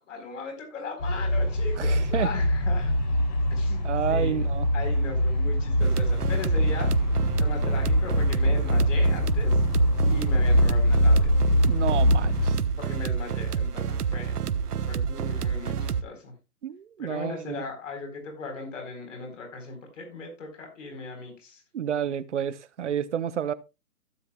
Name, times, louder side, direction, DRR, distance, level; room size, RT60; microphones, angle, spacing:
voice 1, 0.1-2.9 3.5-4.5 4.7-6.9 7.4-9.6 10.0-11.3 12.8-14.3 14.9-16.3 17.0-21.6, left 3 dB, 55° left, 4.3 m, -38 dB
sound 1, 1.0-12.6, left 1 dB, 30° left, 1.8 m, -23 dB
voice 2, 1.8-2.3 3.8-4.7 11.7-12.6 16.6-17.6 21.7-23.5, right 9 dB, 50° right, 0.8 m, -30 dB
sound 2, 5.8-16.0, right 7 dB, 80° right, 1.0 m, -29 dB
15.5 x 7.7 x 2.3 m
hypercardioid pair, 160°, 46 cm